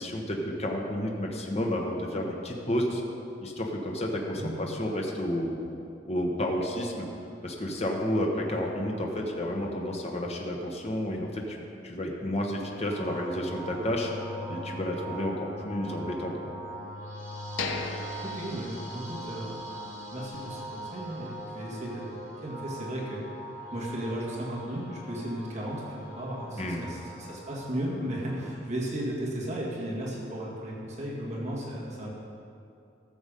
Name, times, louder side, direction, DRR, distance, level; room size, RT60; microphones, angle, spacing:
voice 1, 0.0-3.0 3.4-5.6 6.0-7.1 7.4-14.1 14.5-16.5 26.6-26.8, left 1 dB, 35° left, 0 dB, 1.1 m, -31 dB
sound 1, 12.9-28.5, right 1 dB, 15° right, 3.0 m, -41 dB
sound 2, 17.6-19.5 19.8-19.9 20.4-20.6, left 4 dB, 75° left, 0.9 m, -37 dB
voice 2, 18.2-19.6 20.1-23.3 23.7-32.1, right 1 dB, 35° right, -5 dB, 1.9 m, -35 dB
14.0 x 7.1 x 5.2 m, 2.6 s
head